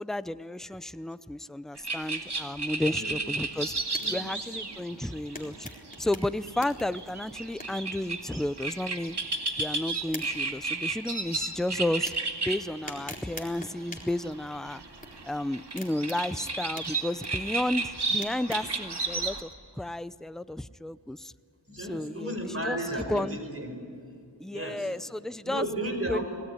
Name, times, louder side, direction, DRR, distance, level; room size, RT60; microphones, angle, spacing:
voice 1, 0.0-3.8 4.1-5.7 6.0-9.2 9.6-12.1 12.4-14.8 15.2-19.5 19.8-21.3 21.8-22.4 22.6-22.8 23.1-23.4 24.4-25.7 26.1-26.2, left 1 dB, ahead, 15 dB, 0.5 m, -32 dB
sound 1, 1.8-12.6 13.0-13.1 13.3-19.4, right 3 dB, 65° right, 2.2 m, -33 dB
voice 2, 2.8-3.2 4.0-4.3 4.9-5.0 21.7-23.7 24.5-24.9 25.4-26.2, right 1 dB, 30° right, 4 dB, 5.2 m, -34 dB
sound 2, 3.7-18.8, left 1 dB, 20° left, 4.1 m, -48 dB
25.5 x 18.5 x 9.8 m, 2.4 s
wide cardioid pair, 55°, 43 cm